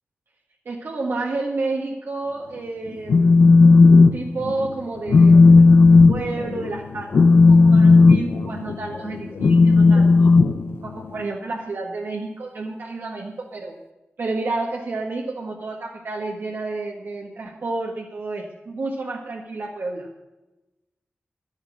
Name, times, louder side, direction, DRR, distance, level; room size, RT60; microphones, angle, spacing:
voice 1, 0.6-3.4 4.1-5.4 6.1-10.3 10.8-13.8 14.2-20.1, right 3 dB, 70° right, -1 dB, 1.6 m, -30 dB
Telephone, 2.9-4.1 4.4-4.7 5.1-11.2, left 3 dB, 75° left, 0.7 m, -13 dB
11.5 x 11.5 x 6.2 m, 1.0 s
wide cardioid pair, 135°, 4 cm